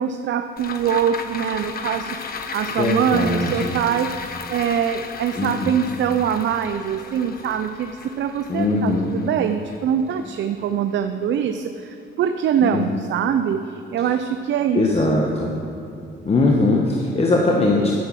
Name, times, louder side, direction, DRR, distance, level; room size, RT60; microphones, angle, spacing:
voice 1, 0.0-15.2, right 8 dB, 65° right, 8 dB, 0.5 m, -23 dB
sound 1, 0.6-11.1 11.4-11.5, left 5 dB, 50° left, 1.0 m, -35 dB
voice 2, 2.8-3.7 5.3-5.8 8.5-9.1 12.6-13.0 14.7-15.5 16.2-17.9, left 2 dB, 30° left, -1 dB, 1.2 m, -20 dB
10.5 x 6.7 x 7.5 m, 2.7 s
cardioid pair, 90°, 20 cm